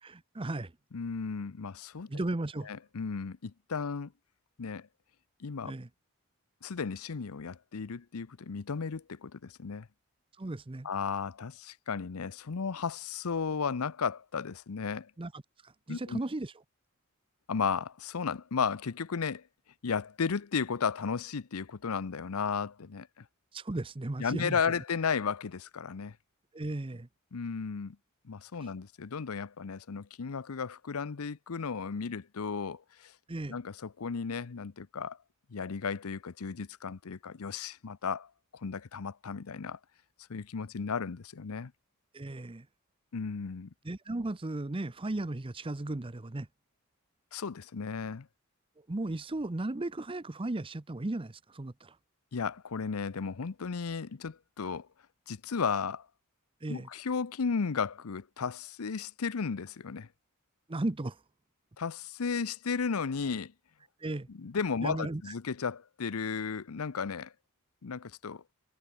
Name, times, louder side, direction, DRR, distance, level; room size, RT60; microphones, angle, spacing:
voice 1, 0.0-0.7 2.1-2.7 5.6-5.9 10.4-10.9 15.2-16.5 23.5-24.6 26.5-27.1 28.6-28.7 33.3-33.6 42.1-42.7 43.8-46.5 48.8-52.0 56.6-56.9 60.7-61.2 64.0-64.3 64.8-65.3, right 2 dB, 25° right, 0.7 m, -36 dB
voice 2, 0.9-2.1 2.7-4.1 4.6-4.9 5.4-5.7 6.6-9.9 10.8-15.1 15.9-16.2 17.5-19.4 19.8-23.2 24.2-26.2 27.3-28.0 28.2-33.1 33.5-35.2 35.5-39.8 40.3-41.7 43.1-43.7 47.3-48.3 52.3-54.9 55.3-56.1 56.7-60.1 61.8-63.5 64.3-67.3 67.8-68.4, left 5 dB, 90° left, 0.7 m, -34 dB
head